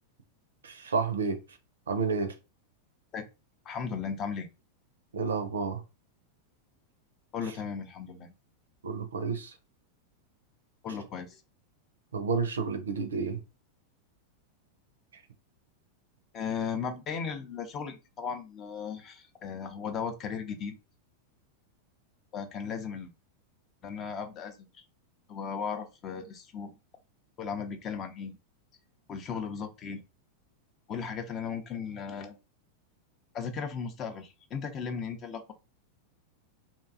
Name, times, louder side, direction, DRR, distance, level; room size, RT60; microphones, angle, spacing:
voice 1, 0.6-1.4 1.9-2.3 5.1-5.8 8.8-9.5 12.1-13.4, right 5 dB, 70° right, 0.4 m, -30 dB
voice 2, 3.7-4.5 7.3-8.3 10.8-11.4 16.3-20.8 22.3-23.1 23.8-24.8 25.3-26.8 27.4-28.4 29.1-30.0 30.9-32.4 33.3-35.5, left 6 dB, 30° left, 0.5 m, -36 dB
2.6 x 2.3 x 2.4 m
figure-of-eight pair, 90°, 0 cm